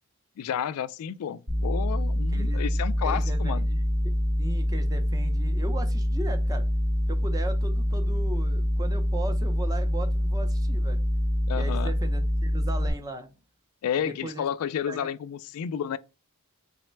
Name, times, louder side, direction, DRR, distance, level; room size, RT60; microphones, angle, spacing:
voice 1, 0.4-3.7 11.5-12.0 13.8-16.0, left 8 dB, 75° left, 0.3 m, -31 dB
sound 1, 1.5-12.9, equal, 85° right, 1.7 m, -25 dB
voice 2, 2.3-2.6 3.0-3.8 4.0-6.7 7.1-11.0 11.6-13.3 14.0-14.5 14.9-15.1, right 2 dB, 15° right, 0.5 m, -38 dB
4.0 x 2.1 x 4.3 m
head